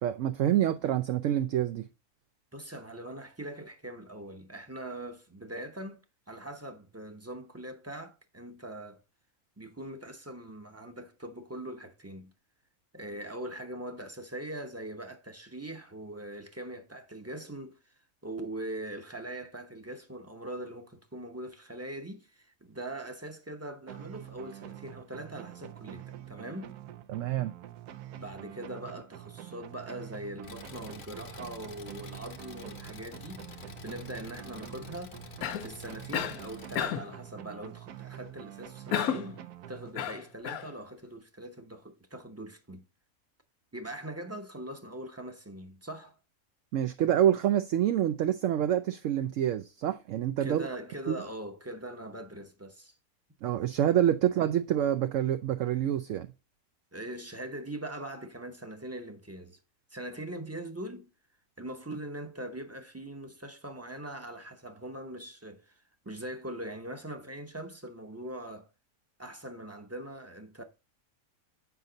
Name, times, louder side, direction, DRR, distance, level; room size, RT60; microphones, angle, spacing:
voice 1, 0.0-1.9 27.1-27.5 46.7-50.7 51.1-51.2 53.4-56.3, right 11 dB, 70° right, 0.8 m, -27 dB
voice 2, 2.5-9.0 9.6-12.3 12.9-17.9 18.2-26.8 28.2-35.2 35.6-39.4 39.7-42.8 43.7-46.2 50.4-52.9 56.9-59.6 59.9-61.1 61.6-68.7 69.2-70.6, right 1 dB, 15° right, 0.7 m, -42 dB
sound 1, 23.9-40.4, right 12 dB, 85° right, 1.2 m, -46 dB
Engine, 30.4-36.8, left 6 dB, 50° left, 0.8 m, -49 dB
Cough, 35.4-35.7 36.1-36.4 36.8-37.1 38.9-39.3 39.9-40.7, left 9 dB, 75° left, 1.2 m, -31 dB
8.1 x 5.3 x 3.9 m
omnidirectional pair, 1.6 m